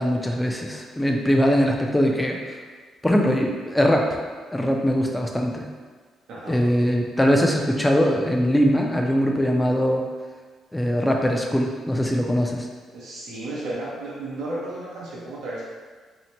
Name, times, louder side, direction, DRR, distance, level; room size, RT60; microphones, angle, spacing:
voice 1, 0.0-2.4 3.0-4.2 4.5-5.7 6.5-10.0 10.7-12.7, equal, 10° left, 1 dB, 0.4 m, -21 dB
voice 2, 6.3-6.7 12.9-15.6, right 2 dB, 80° right, -6 dB, 0.6 m, -33 dB
2.7 x 2.0 x 3.0 m, 1.5 s
cardioid pair, 90°, 0 cm